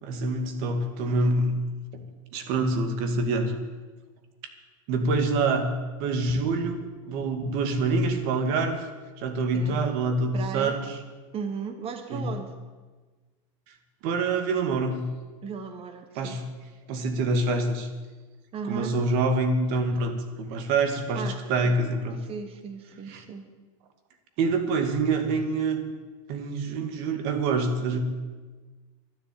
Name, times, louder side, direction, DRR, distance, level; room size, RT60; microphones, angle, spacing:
voice 1, 0.0-1.5 1.9-2.0 2.3-3.5 4.9-5.7 6.0-6.8 7.1-8.9 9.2-10.9 12.1-12.3 14.0-15.0 16.2-16.4 16.9-17.9 18.7-21.2 21.5-22.2 23.1-23.2 24.4-25.8 26.3-28.0, right 3 dB, 60° right, 7 dB, 2.3 m, -26 dB
voice 2, 10.3-10.8 11.3-12.5 15.4-16.4 18.5-18.9 21.2-21.8 22.2-23.5, right 6 dB, 35° right, 7 dB, 1.7 m, -36 dB
12.0 x 10.5 x 8.6 m, 1.3 s
supercardioid pair, 120°, 17 cm